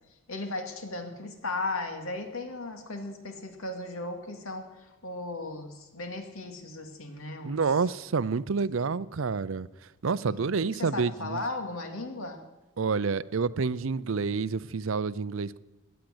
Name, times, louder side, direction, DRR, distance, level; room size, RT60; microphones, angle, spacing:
voice 1, 0.3-7.6 10.3-12.4, left 2 dB, 90° left, 2.3 m, -36 dB
voice 2, 7.4-9.7 10.0-11.4 12.8-15.6, right 5 dB, 70° right, 0.5 m, -28 dB
17.0 x 10.5 x 7.9 m
head